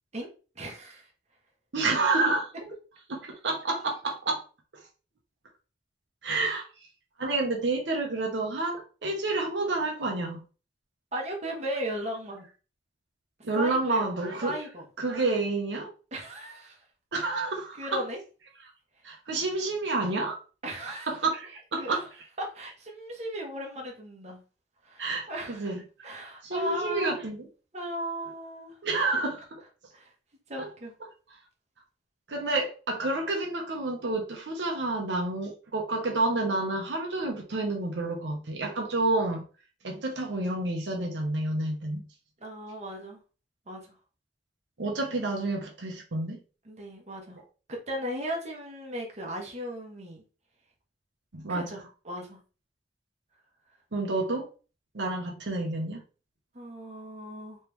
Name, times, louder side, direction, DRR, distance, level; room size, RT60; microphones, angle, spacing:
voice 1, 0.6-1.1 11.1-12.4 13.5-14.1 14.4-14.8 16.1-16.8 17.2-17.3 17.8-18.2 20.6-21.1 21.8-22.0 22.4-24.4 24.8-25.7 26.0-27.2 27.7-28.8 29.9-30.1 30.5-30.9 39.8-40.0 42.4-43.2 43.7-43.8 46.6-47.4 47.7-50.2 51.5-51.8 52.0-52.4 56.5-57.6, right 1 dB, 40° right, 1.1 m, -36 dB
voice 2, 1.7-2.5 3.1-4.4 4.7-4.8 6.2-6.6 7.2-10.4 13.4-14.6 15.0-15.9 17.1-18.0 19.0-20.4 21.1-22.0 25.0-25.8 26.4-27.5 28.8-29.6 30.6-30.7 32.3-39.4 39.8-42.0 44.8-46.4 51.3-51.7 53.9-54.5 54.9-56.0, right 2 dB, 90° right, 0.9 m, -29 dB
3.3 x 3.1 x 3.4 m
head